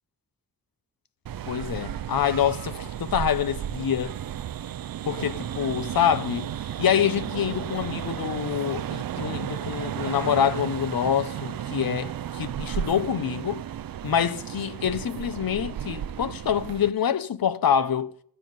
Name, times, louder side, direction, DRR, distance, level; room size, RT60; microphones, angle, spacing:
sound 1, 1.3-16.9, right 10 dB, 70° right, 0.5 m, -33 dB
voice 1, 1.5-4.2 5.1-6.5 6.8-13.6 14.0-18.1, left 8 dB, 75° left, 0.8 m, -26 dB
16.5 x 5.6 x 9.3 m
wide cardioid pair, 110°, 36 cm